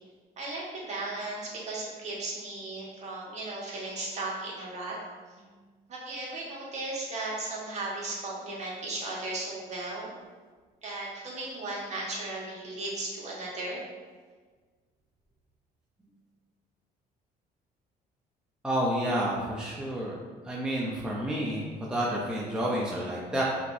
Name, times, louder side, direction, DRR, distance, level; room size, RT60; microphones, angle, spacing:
voice 1, 0.4-5.0 5.9-10.1 10.8-13.8, right 2 dB, 40° right, -5 dB, 1.4 m, -36 dB
voice 2, 18.6-20.2 20.4-23.4, equal, 5° right, -5 dB, 0.6 m, -30 dB
5.7 x 3.0 x 2.6 m, 1.4 s
cardioid pair, 110°, 17 cm